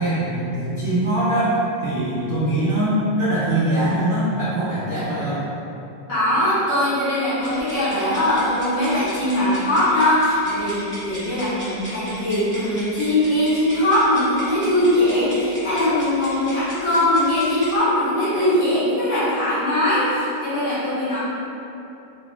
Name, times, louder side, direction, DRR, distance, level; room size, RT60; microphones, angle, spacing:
voice 1, 0.0-5.4, right 1 dB, 80° right, -12 dB, 0.4 m, -22 dB
voice 2, 6.1-21.2, left 1 dB, 55° left, -11 dB, 1.4 m, -21 dB
sound 1, 7.4-17.8, equal, 20° left, 0.3 m, -38 dB
3.0 x 2.3 x 3.7 m, 2.9 s
omnidirectional pair, 1.9 m